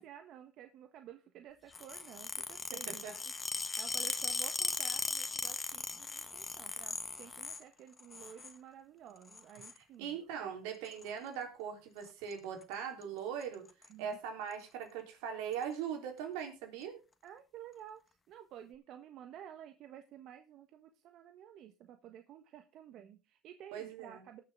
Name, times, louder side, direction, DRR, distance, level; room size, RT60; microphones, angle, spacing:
voice 1, 0.0-10.7 13.9-14.2 17.2-24.4, right 10 dB, 60° right, 7 dB, 1.2 m, -53 dB
sound 1, 1.7-7.6 8.0-8.5 9.3-9.8 10.9-11.1 12.0-12.3 12.6-12.7 13.0-13.1 13.4-13.9 14.5-14.6 15.5-15.6, left 4 dB, 20° left, 1.3 m, -38 dB
voice 2, 10.0-13.7 14.0-17.0 23.7-24.3, right 8 dB, 85° right, 4 dB, 3.6 m, -40 dB
19.0 x 6.9 x 3.6 m, 0.28 s
cardioid pair, 110°, 0 cm